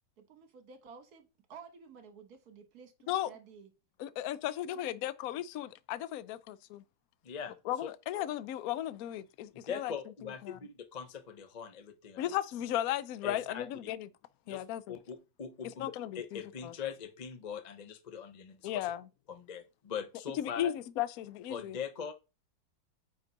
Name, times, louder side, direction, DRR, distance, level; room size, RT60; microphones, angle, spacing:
voice 1, 0.2-3.7, right 6 dB, 55° right, 1.7 m, -53 dB
voice 2, 4.0-6.8 7.7-9.9 10.4-10.6 12.2-14.1 14.5-14.9 15.8-16.7 18.6-19.1 20.4-21.8, left 12 dB, 85° left, 0.8 m, -35 dB
voice 3, 7.2-7.6 7.8-7.9 9.7-12.3 13.2-13.6 14.5-14.6 14.9-18.9 19.3-20.7 21.5-22.1, left 7 dB, 50° left, 0.4 m, -41 dB
8.9 x 3.7 x 4.1 m
omnidirectional pair, 2.2 m